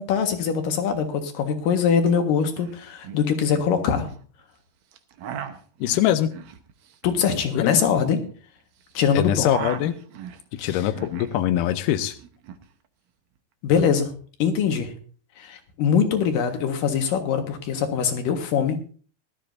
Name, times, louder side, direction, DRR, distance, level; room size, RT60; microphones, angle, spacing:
voice 1, 0.0-4.1 7.0-8.2 8.9-9.5 10.6-10.9 13.6-14.1 14.4-14.9 15.4-18.8, left 7 dB, 65° left, 6 dB, 2.9 m, -23 dB
sound 1, 2.0-2.1 2.4-2.7 3.0-4.2 4.9-8.9 9.2-11.4 11.7-12.6, right 8 dB, 80° right, 1.6 m, -38 dB
voice 2, 5.8-6.3 7.5-7.8 9.2-10.0 10.6-12.1, left 12 dB, 85° left, 10 dB, 1.9 m, -23 dB
19.5 x 12.5 x 2.6 m, 0.41 s
omnidirectional pair, 4.6 m